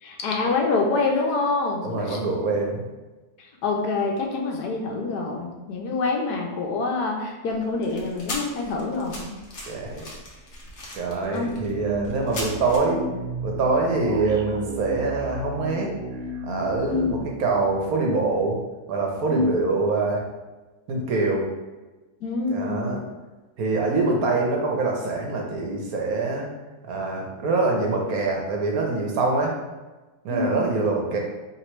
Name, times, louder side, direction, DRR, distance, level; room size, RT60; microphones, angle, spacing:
voice 1, 0.0-2.2 3.4-9.4 11.3-11.5 16.9-17.2 19.3-19.5 22.2-23.0 30.3-30.6, left 3 dB, 80° left, 1 dB, 1.3 m, -26 dB
voice 2, 1.8-2.8 9.7-10.1 10.9-13.0 13.4-15.9 16.4-18.6 18.9-20.3 20.9-21.5 22.5-23.0 23.6-26.5 26.8-29.5 30.2-31.2, right 3 dB, 70° right, 0 dB, 1.2 m, -24 dB
sound 1, 7.5-12.8, left 1 dB, 50° left, 1.1 m, -38 dB
sound 2, 11.5-18.6, right 1 dB, 90° right, 1.2 m, -34 dB
3.2 x 3.0 x 4.5 m, 1.2 s
omnidirectional pair, 1.7 m